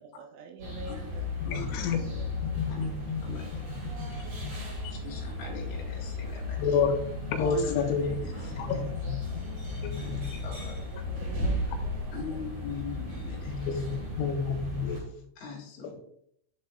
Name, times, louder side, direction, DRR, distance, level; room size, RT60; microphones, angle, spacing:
voice 1, 0.0-1.3 1.8-2.8 3.3-5.3 8.7-10.2 10.9-12.4, right 5 dB, 80° right, 4 dB, 2.9 m, -49 dB
sound 1, 0.6-15.0, left 2 dB, 40° right, 2.2 m, -35 dB
voice 2, 0.8-1.2 1.4-2.2 2.7-2.9 3.2-3.6 4.8-6.8 7.3-8.9 10.0-10.1 10.4-10.9 12.1-14.0 15.4-16.0, left 4 dB, 60° left, -5 dB, 3.1 m, -41 dB
voice 3, 1.5-2.0 2.6-3.2 4.0-4.6 6.6-7.0 7.3-8.2 8.6-9.1 9.8-10.2 13.5-15.2, left 5 dB, 80° left, 4 dB, 2.9 m, -30 dB
10.5 x 5.5 x 2.2 m, 0.70 s
omnidirectional pair, 5.7 m